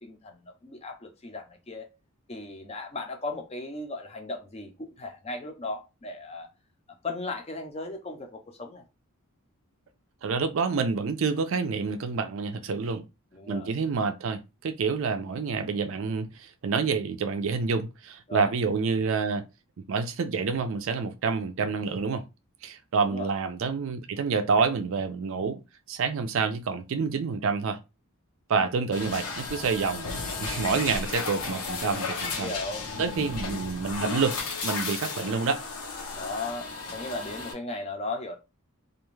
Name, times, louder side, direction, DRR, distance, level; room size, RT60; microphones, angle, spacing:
voice 1, 0.0-1.9 2.3-6.5 7.0-8.8 13.3-13.7 18.3-18.5 23.0-23.3 31.9-32.1 32.4-33.2 36.1-38.4, left 2 dB, 25° left, 0.5 m, -37 dB
voice 2, 10.2-13.0 13.5-19.4 19.9-22.2 22.6-25.6 25.9-27.8 28.5-30.1 30.4-32.5 33.0-35.6, right 5 dB, 60° right, 0.4 m, -28 dB
sound 1, 28.9-37.5, left 4 dB, 90° left, 0.7 m, -34 dB
2.5 x 2.2 x 3.1 m
head